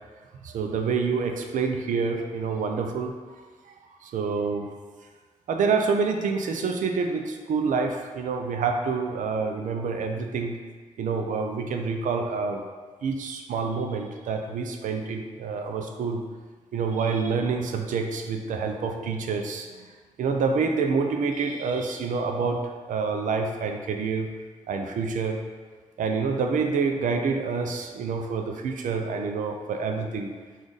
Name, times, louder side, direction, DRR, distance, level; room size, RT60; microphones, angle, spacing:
voice 1, 0.4-3.1 4.0-4.7 5.5-10.6 11.0-12.6 13.0-16.2 16.7-19.7 20.2-24.3 24.7-25.4 26.0-30.3, right 5 dB, 75° right, 4 dB, 0.5 m, -27 dB
4.9 x 2.5 x 3.9 m, 1.5 s
supercardioid pair, 50°, 13 cm